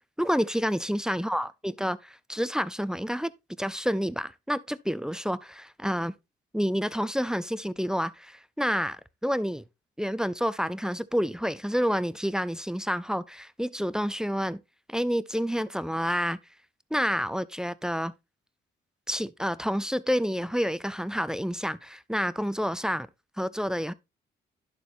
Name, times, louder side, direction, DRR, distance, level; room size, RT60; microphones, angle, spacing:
voice 1, 0.2-3.3 3.6-6.1 6.5-9.6 10.0-14.6 14.9-16.4 16.9-18.1 19.1-23.1 23.4-23.9, equal, 5° right, 0.4 m, -29 dB
11.0 x 7.0 x 2.6 m
cardioid pair, 90°, 20 cm